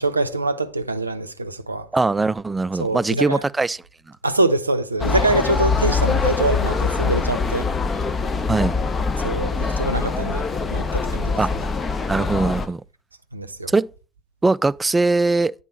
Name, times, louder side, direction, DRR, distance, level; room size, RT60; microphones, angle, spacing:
voice 1, 0.0-1.9 2.8-3.4 4.2-7.7 9.2-10.5 10.7-11.3 13.3-13.7, right 2 dB, 90° right, 0.5 m, -24 dB
voice 2, 1.9-3.8 8.5-8.8 11.4-11.5 12.1-12.8 13.7-13.9 14.4-15.5, right 3 dB, 15° right, 0.3 m, -20 dB
sound 1, 5.0-12.7, left 4 dB, 30° left, 1.0 m, -23 dB
9.2 x 3.9 x 5.6 m
figure-of-eight pair, 60°, 0 cm